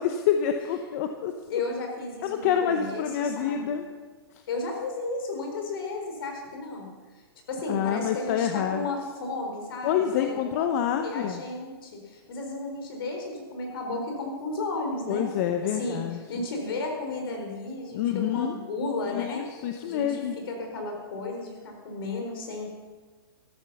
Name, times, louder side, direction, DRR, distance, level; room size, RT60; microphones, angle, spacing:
voice 1, 0.0-1.3 2.2-3.8 7.7-8.8 9.8-11.4 15.1-16.4 17.9-18.5 19.1-20.3, left 9 dB, 40° left, 6 dB, 0.9 m, -27 dB
voice 2, 1.5-3.8 4.5-10.7 11.0-15.3 15.6-19.4 19.8-22.7, left 2 dB, 65° left, 2 dB, 4.3 m, -34 dB
13.5 x 12.5 x 5.6 m, 1.4 s
hypercardioid pair, 150°, 13 cm